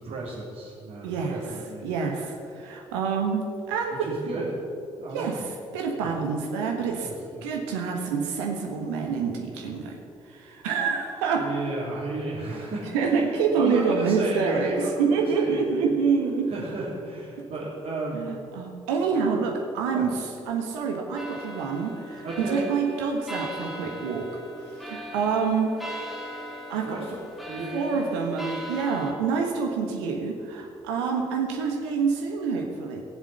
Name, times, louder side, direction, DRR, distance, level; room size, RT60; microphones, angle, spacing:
voice 1, 0.0-1.9 4.0-4.5 5.0-5.5 5.9-6.1 7.0-7.4 11.4-13.3 13.5-15.9 16.5-18.2 19.1-19.2 19.9-20.1 22.2-22.6 26.8-27.1 27.5-28.0, right 2 dB, 55° right, -9 dB, 3.4 m, -34 dB
voice 2, 1.0-1.4 1.8-3.9 5.1-5.4 5.7-7.1 7.4-10.0 10.3-11.5 12.9-16.5 18.1-24.3 24.9-25.7 26.7-27.0 27.7-33.0, right 5 dB, 75° right, 2 dB, 1.4 m, -27 dB
sound 1, 21.2-29.1, equal, ahead, 2.5 m, -39 dB
18.0 x 7.4 x 7.8 m, 2.6 s
figure-of-eight pair, 45°, 15 cm